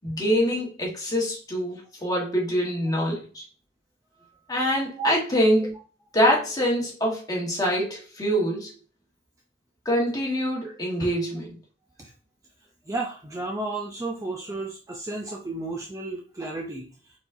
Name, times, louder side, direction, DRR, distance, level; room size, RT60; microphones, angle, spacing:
voice 1, 0.0-3.4 4.5-5.7 6.1-8.7 9.8-11.6, equal, 20° left, 1.4 m, -25 dB
voice 2, 12.9-17.1, right 3 dB, 15° right, 0.5 m, -33 dB
4.6 x 4.0 x 2.7 m
head